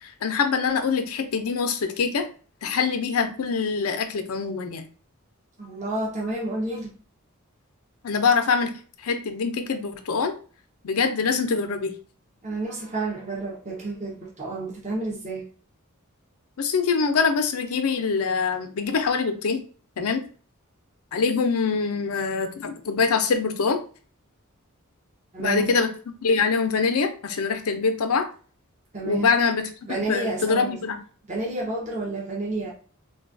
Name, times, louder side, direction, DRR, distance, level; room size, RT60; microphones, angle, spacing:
voice 1, 0.0-2.3 2.6-4.9 8.0-8.7 9.0-10.3 10.8-11.9 16.6-19.6 20.0-20.3 21.1-23.8 25.4-25.9 26.2-28.3 29.0-29.7 30.1-31.0, left 5 dB, 85° left, 0.5 m, -24 dB
voice 2, 5.6-6.9 12.4-15.5 25.3-25.7 28.9-29.3 29.8-30.8 31.3-32.7, right 2 dB, 35° right, 0.8 m, -30 dB
3.8 x 2.3 x 2.5 m
head